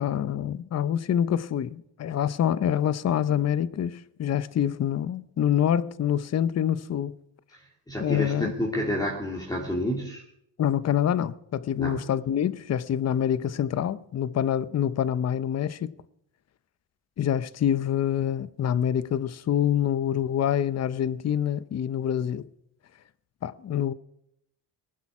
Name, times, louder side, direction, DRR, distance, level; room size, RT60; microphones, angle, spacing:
voice 1, 0.0-7.2 8.0-8.5 10.6-15.9 17.2-22.5 23.4-23.9, left 9 dB, 35° left, 0.7 m, -26 dB
voice 2, 7.5-10.2 11.8-12.1, equal, 10° left, 2.5 m, -30 dB
19.5 x 11.5 x 4.8 m
cardioid pair, 130°, 48 cm